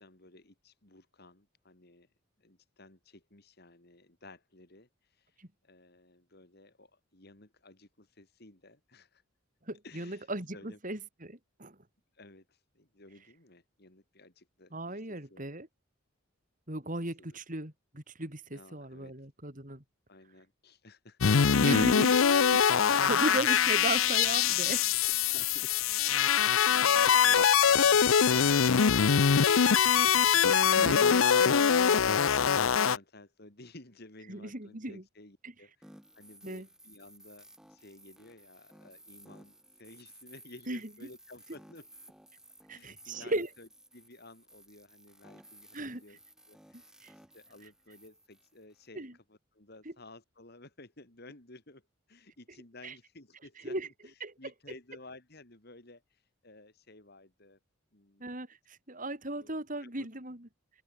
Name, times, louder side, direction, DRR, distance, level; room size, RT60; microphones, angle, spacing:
voice 1, 0.0-2.1 2.4-9.2 9.8-10.8 12.1-15.5 16.8-17.4 18.5-19.1 20.1-22.0 24.5-25.1 25.3-25.8 26.0-31.5 31.9-35.8 36.1-41.9 42.7-46.2 46.5-47.0 47.3-51.8 52.1-57.6 57.9-58.4 59.4-60.1, left 2 dB, 50° left, 3.1 m, -54 dB
voice 2, 9.7-11.8 14.7-15.7 16.7-19.8 21.6-22.1 22.5-24.8 30.7-31.2 34.3-35.0 35.4-35.5 36.4-36.7 40.7-40.8 42.7-43.5 45.7-46.0 47.0-47.1 48.9-49.1 49.9-50.0 52.8-52.9 53.6-53.9 54.2-54.3 58.2-60.5, right 1 dB, 40° right, 3.9 m, -36 dB
sound 1, 21.2-33.0, left 7 dB, 80° left, 0.6 m, -23 dB
sound 2, 35.8-48.9, right 1 dB, 5° right, 5.6 m, -57 dB
open air
head